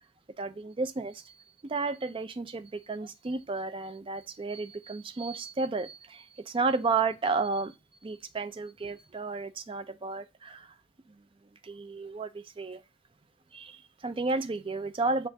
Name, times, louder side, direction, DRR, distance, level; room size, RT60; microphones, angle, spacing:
voice 1, 0.4-1.3 1.6-7.7 8.0-10.7 11.1-11.2 11.6-12.8 13.5-15.3, right 4 dB, 25° right, 0.4 m, -32 dB
7.1 x 2.5 x 2.6 m
head